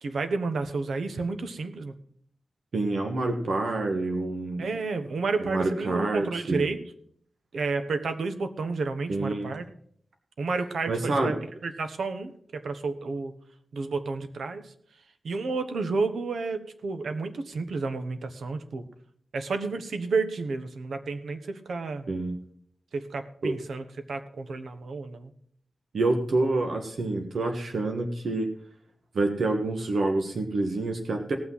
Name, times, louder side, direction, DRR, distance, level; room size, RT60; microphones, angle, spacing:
voice 1, 0.0-1.9 4.6-6.8 7.5-9.6 10.4-11.4 11.6-13.3 13.7-14.7 15.2-18.9 19.3-22.1 22.9-25.3, right 4 dB, 90° right, 9 dB, 1.1 m, -31 dB
voice 2, 2.7-4.6 5.4-6.7 9.1-9.5 10.9-11.3 22.1-22.4 23.4-23.5 25.9-28.5 29.1-31.4, right 2 dB, 75° right, 3 dB, 1.4 m, -27 dB
18.0 x 6.2 x 5.6 m, 0.63 s
wide cardioid pair, 100°, 0 cm